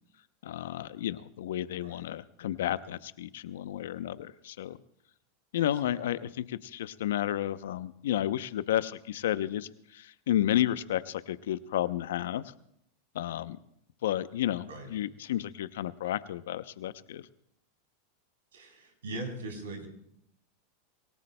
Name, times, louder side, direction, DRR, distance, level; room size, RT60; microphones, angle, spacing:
voice 1, 0.4-4.8 5.5-12.4 13.1-13.6 14.0-17.2, left 12 dB, 75° left, 15 dB, 0.6 m, -32 dB
voice 2, 5.6-6.0 14.7-14.9 18.5-19.9, right 2 dB, 85° right, 3 dB, 3.6 m, -41 dB
26.5 x 17.5 x 2.2 m, 0.75 s
hypercardioid pair, 105°, 0 cm